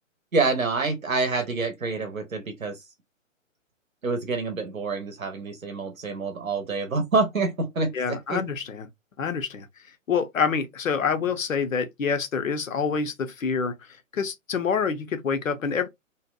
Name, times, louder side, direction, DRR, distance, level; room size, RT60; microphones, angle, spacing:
voice 1, 0.3-2.9 4.0-8.4, right 3 dB, 90° right, 0.7 m, -27 dB
voice 2, 7.9-8.9 9.2-9.7 10.1-15.9, left 6 dB, 80° left, 0.6 m, -27 dB
2.7 x 2.1 x 2.3 m
figure-of-eight pair, 125°, 39 cm